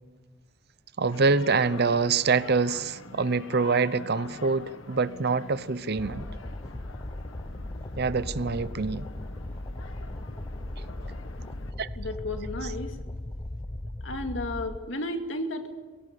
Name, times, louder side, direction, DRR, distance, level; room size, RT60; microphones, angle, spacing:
voice 1, 1.0-6.3 8.0-9.1 11.8-11.9, right 4 dB, 55° right, 16 dB, 0.8 m, -25 dB
sound 1, 1.1-11.7, left 3 dB, 85° left, 1.5 m, -45 dB
sound 2, 6.0-14.8, left 1 dB, 20° left, 0.6 m, -37 dB
voice 2, 12.0-13.0 14.0-15.7, left 1 dB, 70° left, 5 dB, 2.3 m, -33 dB
21.0 x 17.0 x 8.4 m, 1.3 s
head